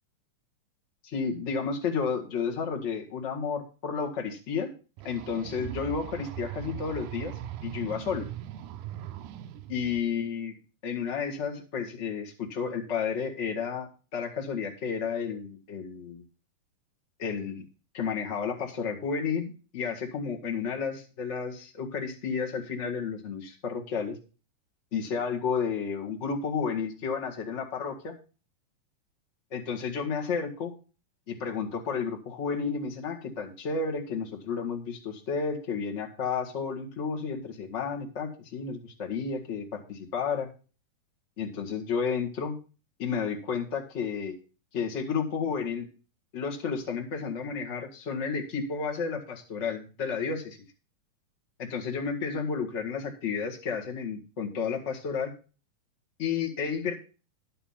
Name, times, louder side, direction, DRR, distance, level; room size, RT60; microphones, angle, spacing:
voice 1, 1.0-4.7 5.0-8.3 9.7-10.5 10.8-16.2 17.2-17.6 17.9-24.2 24.9-28.1 29.5-30.7 31.3-40.5 41.4-42.6 43.0-44.4 44.7-45.9 46.3-50.6 51.6-55.3 56.2-56.9, left 5 dB, 30° left, 1 dB, 1.4 m, -32 dB
sound 1, 5.0-10.0, right 12 dB, 75° right, 2.1 m, -40 dB
11.5 x 6.8 x 5.7 m, 0.35 s
omnidirectional pair, 4.0 m